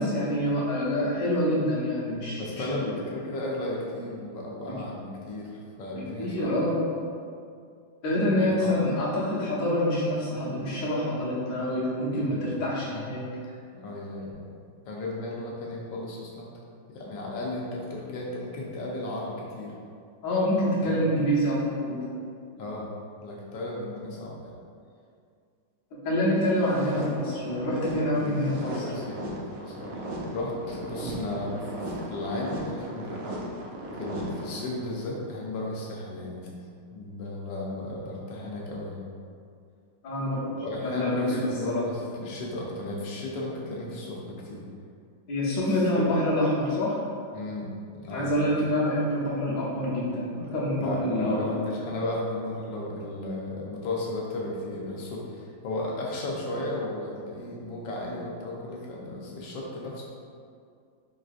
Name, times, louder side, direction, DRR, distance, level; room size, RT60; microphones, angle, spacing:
voice 1, 0.0-2.6 4.6-4.7 5.9-6.7 8.0-13.2 20.2-22.1 26.0-28.8 40.0-40.4 40.8-41.5 41.7-41.8 45.3-47.0 48.1-51.3, left 1 dB, 55° left, -8 dB, 1.1 m, -26 dB
voice 2, 2.3-6.7 8.4-8.8 12.2-12.4 13.7-14.5 14.8-16.5 16.9-19.7 20.8-21.0 22.6-22.9 23.2-24.5 28.2-28.4 28.8-30.0 30.3-33.2 33.9-36.5 36.9-39.0 40.6-44.6 45.6-46.1 47.3-48.3 50.8-60.0, left 2 dB, 80° left, -3 dB, 1.3 m, -34 dB
sound 1, 26.4-35.0, right 1 dB, 75° right, 0.9 m, -37 dB
4.5 x 2.4 x 2.4 m, 2.3 s
omnidirectional pair, 2.1 m